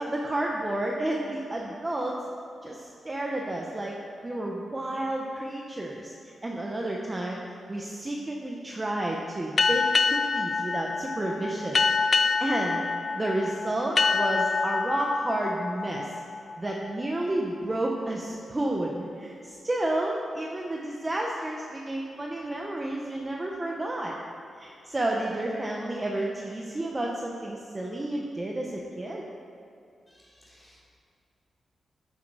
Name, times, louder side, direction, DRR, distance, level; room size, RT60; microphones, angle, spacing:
voice 1, 0.0-2.2 2.6-3.9 4.2-6.1 6.4-11.8 12.4-12.9 13.1-16.1 16.6-24.1 24.6-29.2, right 1 dB, 20° right, -1 dB, 0.9 m, -31 dB
sound 1, 9.6-16.9, left 4 dB, 40° left, 0.4 m, -26 dB
voice 2, 30.1-30.8, equal, 10° left, -6 dB, 3.2 m, -58 dB
13.5 x 8.2 x 4.8 m, 2.5 s
wide cardioid pair, 150°, 0 cm